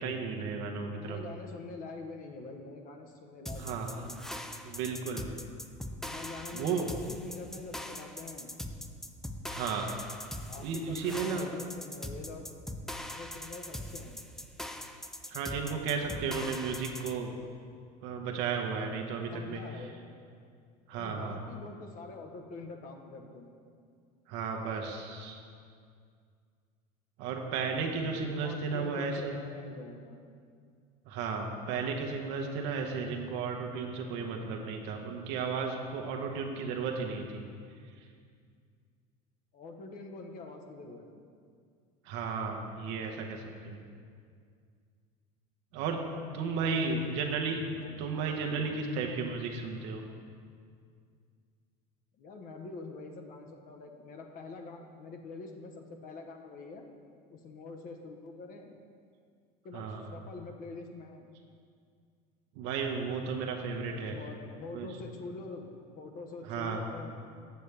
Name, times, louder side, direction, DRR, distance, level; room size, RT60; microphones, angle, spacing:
voice 1, 0.0-1.2 3.5-3.9 4.6-5.3 6.5-6.9 9.5-9.9 10.6-11.5 15.3-17.3 18.0-19.6 20.9-21.4 24.3-25.4 27.2-29.3 31.1-37.2 42.0-43.8 45.7-46.0 46.3-47.6 48.0-50.0 59.7-60.1 62.5-64.2 64.7-64.9 66.4-66.8, right 5 dB, 70° right, 2 dB, 1.0 m, -34 dB
voice 2, 0.9-4.3 6.0-8.5 10.5-12.5 13.1-14.2 19.3-19.9 20.9-23.6 28.1-30.2 39.5-41.2 46.4-47.2 47.8-48.1 48.4-48.8 52.2-56.9 57.3-58.8 59.6-61.3 63.9-65.6 65.9-67.2, left 3 dB, 50° left, 4 dB, 0.9 m, -45 dB
sound 1, 3.5-17.2, left 1 dB, ahead, 0.3 m, -41 dB
8.0 x 6.7 x 3.3 m, 2.2 s
supercardioid pair, 105°, 19 cm